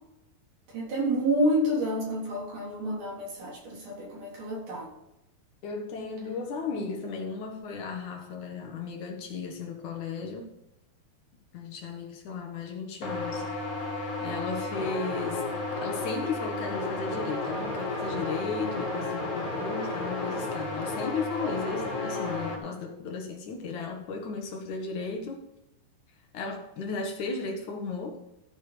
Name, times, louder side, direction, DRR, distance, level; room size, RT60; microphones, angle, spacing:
voice 1, 0.7-4.9, equal, 50° right, -3 dB, 4.7 m, -29 dB
voice 2, 5.6-10.5 11.5-13.7 14.2-25.4 26.3-28.2, left 4 dB, 55° left, 2 dB, 2.6 m, -35 dB
sound 1, 13.0-22.6, left 2 dB, 25° left, 1.7 m, -32 dB
14.5 x 6.7 x 5.1 m, 0.88 s
omnidirectional pair, 4.9 m